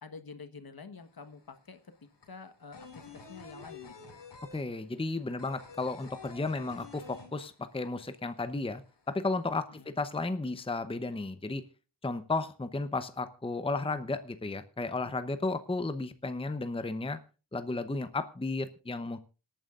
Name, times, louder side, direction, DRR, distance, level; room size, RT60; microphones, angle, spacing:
voice 1, 0.0-4.1 9.7-10.0, left 4 dB, 60° left, 9 dB, 1.4 m, -48 dB
sound 1, 1.0-1.1 1.3-7.9 8.2-8.3 8.6-9.4, left 4 dB, 85° left, 2.5 m, -49 dB
voice 2, 4.5-8.8 9.1-11.6 12.0-17.2 17.5-19.2, left 3 dB, 15° left, 11 dB, 0.8 m, -33 dB
26.5 x 9.1 x 2.5 m, 0.33 s
wide cardioid pair, 70°, 41 cm